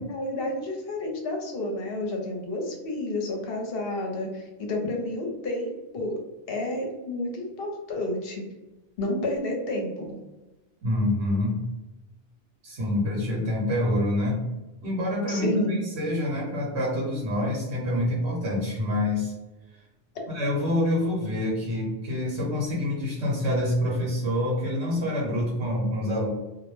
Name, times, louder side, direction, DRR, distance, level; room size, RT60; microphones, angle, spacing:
voice 1, 0.0-6.2 6.5-8.4 9.0-10.2 15.3-15.8, left 1 dB, 60° left, 1 dB, 0.8 m, -30 dB
voice 2, 10.8-11.7 12.6-14.5 14.8-19.3 20.3-26.3, left 1 dB, 70° right, -5 dB, 0.9 m, -26 dB
2.2 x 2.0 x 3.0 m, 1.1 s
omnidirectional pair, 1.2 m